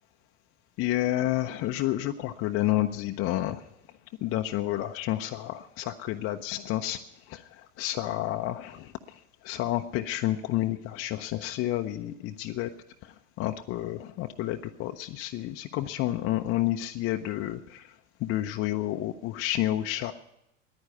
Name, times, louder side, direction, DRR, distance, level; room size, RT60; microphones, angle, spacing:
voice 1, 0.8-3.6 4.2-7.0 7.3-12.7 13.0-17.9 18.2-20.1, left 14 dB, 40° left, 5 dB, 0.7 m, -30 dB
10.5 x 9.6 x 9.3 m, 0.83 s
hypercardioid pair, 100°, 37 cm